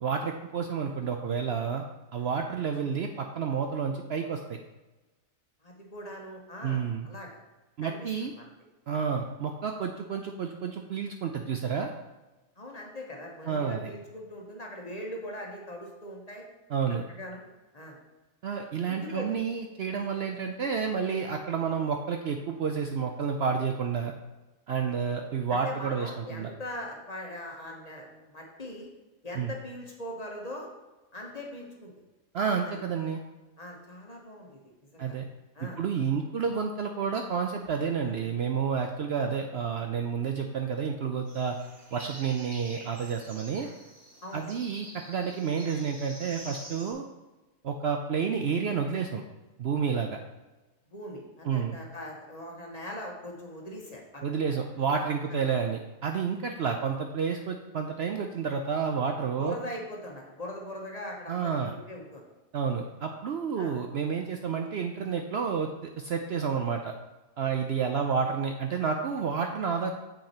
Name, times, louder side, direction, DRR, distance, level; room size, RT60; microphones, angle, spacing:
voice 1, 0.0-1.8 2.1-4.6 6.6-7.1 7.8-8.3 8.9-11.9 13.5-13.8 16.7-17.0 18.4-24.1 24.7-26.5 29.4-29.5 32.3-33.2 35.0-35.3 35.6-41.6 41.9-43.7 44.3-47.1 47.6-49.2 49.6-50.2 51.4-51.8 54.2-59.6 61.3-61.7 62.5-66.9 67.4-69.9, right 6 dB, 60° right, 4 dB, 0.7 m, -30 dB
voice 2, 5.6-7.4 7.8-8.5 12.6-16.4 17.1-17.4 17.7-18.0 18.9-19.3 24.8-24.9 25.5-28.9 29.2-30.7 31.1-31.9 32.6-32.7 33.6-35.1 35.5-35.8 44.2-44.4 50.9-54.2 55.3-55.4 59.4-62.2 62.7-62.8 63.6-63.7, left 1 dB, 30° left, -1 dB, 1.3 m, -41 dB
sound 1, 41.3-46.9, right 1 dB, 30° right, 2.2 m, -47 dB
7.2 x 6.1 x 4.3 m, 1.1 s
omnidirectional pair, 1.4 m